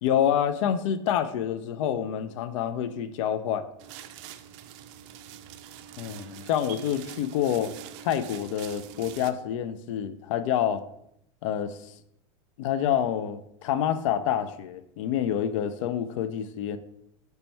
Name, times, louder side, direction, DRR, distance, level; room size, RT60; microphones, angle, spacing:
voice 1, 0.0-3.7 6.0-7.7 8.0-10.8 11.4-11.9 12.6-16.8, left 9 dB, 70° left, 12 dB, 0.4 m, -27 dB
sound 1, 3.8-9.3, right 10 dB, 60° right, 0.4 m, -44 dB
5.2 x 2.2 x 4.3 m, 0.75 s
hypercardioid pair, 110°, 17 cm